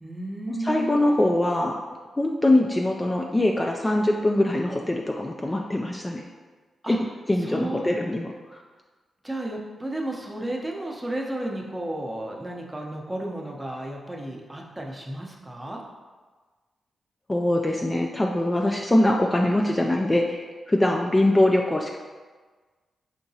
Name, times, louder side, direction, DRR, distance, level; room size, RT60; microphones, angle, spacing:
voice 1, 0.0-1.0 5.5-5.7 6.8-7.0 7.4-7.9 9.2-15.8, right 1 dB, 15° right, -1 dB, 0.6 m, -33 dB
voice 2, 0.6-1.8 2.2-6.2 6.9-7.0 7.3-8.6 17.3-22.0, left 1 dB, 20° left, 1 dB, 0.3 m, -23 dB
4.6 x 2.8 x 2.7 m, 1.4 s
cardioid pair, 70°, 0 cm